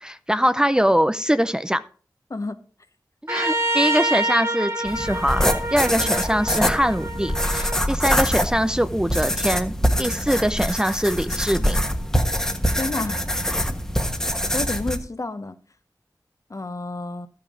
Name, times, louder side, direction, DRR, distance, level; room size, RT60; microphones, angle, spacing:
voice 1, 0.0-1.8 3.2-11.8, equal, 10° right, 0.5 m, -23 dB
voice 2, 2.3-2.6 12.8-13.2 14.5-15.6 16.5-17.3, left 2 dB, 50° left, 1.0 m, -29 dB
Trumpet, 3.3-7.8, right 1 dB, 40° right, 1.8 m, -27 dB
sound 1, 4.9-15.0, equal, 5° left, 1.3 m, -24 dB
12.5 x 5.7 x 5.0 m
wide cardioid pair, 55°, 7 cm